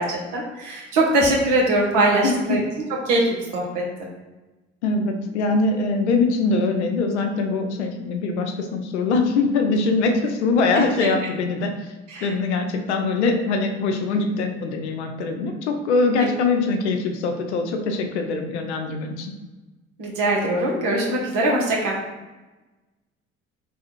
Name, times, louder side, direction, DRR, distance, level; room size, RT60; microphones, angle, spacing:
voice 1, 0.0-2.6 3.1-3.8 10.7-11.1 12.1-12.3 16.2-16.3 20.0-21.9, right 2 dB, 65° right, -2 dB, 1.2 m, -22 dB
voice 2, 2.2-2.6 4.8-11.7 12.2-19.3, left 3 dB, 85° left, 5 dB, 0.6 m, -22 dB
3.4 x 2.4 x 4.4 m, 1.1 s
hypercardioid pair, 55°, 33 cm